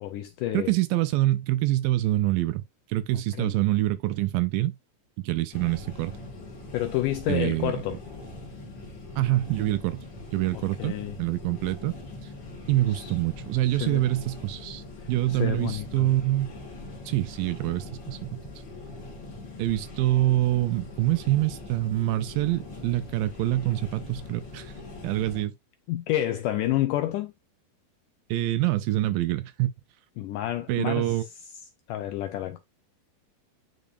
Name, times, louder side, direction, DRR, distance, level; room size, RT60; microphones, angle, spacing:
voice 1, 0.0-0.8 3.3-3.6 6.7-8.0 10.5-11.2 12.9-13.1 13.7-14.1 15.0-16.1 25.9-27.3 30.2-31.2 31.9-32.6, left 13 dB, 85° left, 1.9 m, -30 dB
voice 2, 0.5-2.6 2.9-4.8 5.2-6.1 7.3-7.7 9.2-10.0 10.3-11.9 12.7-16.5 17.1-18.4 19.6-24.7 25.0-25.5 28.3-29.7 30.7-31.3, right 16 dB, 80° right, 2.2 m, -26 dB
sound 1, 5.5-25.5, left 2 dB, 35° left, 2.2 m, -42 dB
10.0 x 3.9 x 2.5 m
omnidirectional pair, 4.3 m